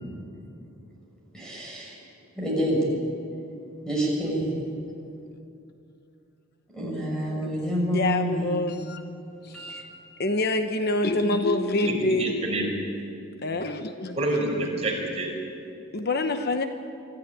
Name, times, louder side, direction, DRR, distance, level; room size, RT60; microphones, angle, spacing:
voice 1, 1.3-2.0 2.4-2.8 3.8-4.5 6.7-8.6 9.5-9.8, equal, 5° left, -3 dB, 6.1 m, -28 dB
voice 2, 7.7-9.0 9.4-9.8 10.2-12.3 13.4-14.2 15.9-16.6, left 2 dB, 50° left, 7 dB, 0.9 m, -26 dB
voice 3, 11.8-12.7 14.2-15.3, right 1 dB, 30° right, -1 dB, 5.0 m, -27 dB
25.0 x 14.0 x 9.2 m, 2.6 s
head